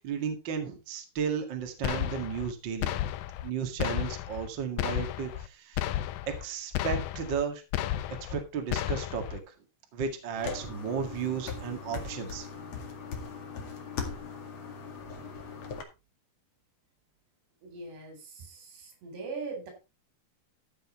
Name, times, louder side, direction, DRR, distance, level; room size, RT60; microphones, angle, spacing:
voice 1, 0.0-2.9 3.4-5.8 6.3-7.6 8.3-9.4 9.9-12.5, right 6 dB, 45° right, 5 dB, 1.6 m, -34 dB
sound 1, 1.8-2.5 2.8-3.5 3.8-4.5 4.8-5.5 5.8-6.4 6.7-7.4 7.7-8.4 8.7-9.4, left 12 dB, 85° left, 2.0 m, -32 dB
sound 2, 10.4-15.8, left 5 dB, 50° left, 2.5 m, -39 dB
voice 2, 17.6-19.7, right 4 dB, 75° right, 5 dB, 6.2 m, -41 dB
14.0 x 6.6 x 4.4 m, 0.28 s
omnidirectional pair, 4.9 m